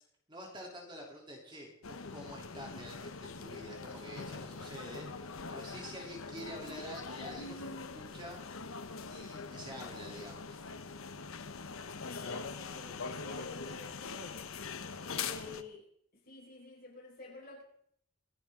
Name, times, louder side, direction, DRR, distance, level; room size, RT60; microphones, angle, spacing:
voice 1, 0.3-8.4 9.1-10.6, equal, 20° right, 0 dB, 3.3 m, -48 dB
sound 1, 1.8-15.6, left 4 dB, 85° left, 1.0 m, -43 dB
voice 2, 12.0-14.5 15.0-15.9 16.2-17.6, left 3 dB, 45° left, -1 dB, 5.1 m, -50 dB
25.5 x 10.5 x 3.8 m, 0.68 s
head